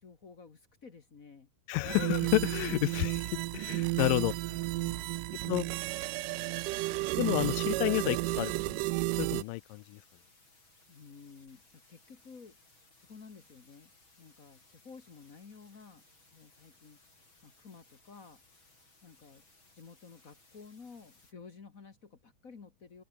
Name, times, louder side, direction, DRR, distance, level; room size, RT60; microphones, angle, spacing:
voice 1, 0.0-1.5 3.8-4.1 4.7-5.4 5.6-5.8 6.2-6.6 10.9-12.6 13.0-13.9 14.2-16.0 16.3-17.0 17.4-18.4 19.0-19.4 19.7-23.0, left 5 dB, 45° left, 1.0 m, -53 dB
voice 2, 1.7-4.3 5.5-5.7 7.2-8.8 9.2-10.0, left 20 dB, 80° left, 2.0 m, -30 dB
sound 1, 1.8-9.4, right 20 dB, 80° right, 1.9 m, -32 dB
sound 2, 6.9-21.3, left 3 dB, 30° left, 7.9 m, -64 dB
open air
omnidirectional pair, 4.3 m